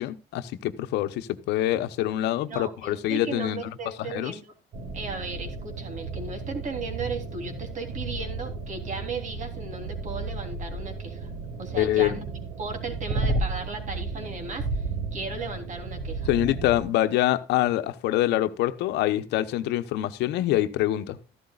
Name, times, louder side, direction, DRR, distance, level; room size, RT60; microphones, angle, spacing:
voice 1, 0.0-3.6 4.0-4.3 11.8-12.2 16.3-21.2, left 14 dB, 85° left, 1.0 m, -25 dB
voice 2, 2.5-4.5 4.9-11.3 11.6-12.2 12.6-14.8 15.1-16.3, right 3 dB, 45° right, 3.4 m, -36 dB
sound 1, 4.7-16.8, right 3 dB, 70° right, 4.6 m, -33 dB
14.0 x 12.0 x 2.4 m
cardioid pair, 110°, 17 cm